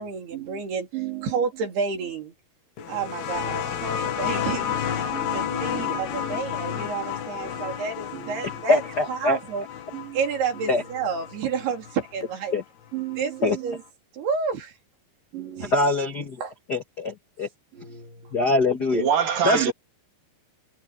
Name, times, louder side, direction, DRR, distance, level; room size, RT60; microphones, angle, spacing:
voice 1, 0.0-0.9 1.2-2.3 2.9-4.8 5.3-8.8 9.1-9.7 10.1-12.6 13.2-13.8 14.1-14.8 15.6-15.7 16.4-16.5, right 6 dB, 80° right, 5.5 m, -30 dB
voice 2, 0.9-1.4 5.1-6.4 7.6-7.8 8.1-8.7 9.9-10.2 10.6-10.7 12.9-13.8 15.3-15.7 17.7-18.4 18.9-19.7, right 8 dB, 60° right, 4.2 m, -30 dB
sound 1, 2.8-12.0 13.2-13.3, left 9 dB, 85° left, 4.1 m, -31 dB
voice 3, 8.7-9.4 10.7-10.8 12.5-12.6 13.4-13.6 15.7-16.4 16.7-17.5 18.3-19.0 19.4-19.7, left 2 dB, 50° left, 1.2 m, -23 dB
omnidirectional pair, 4.5 m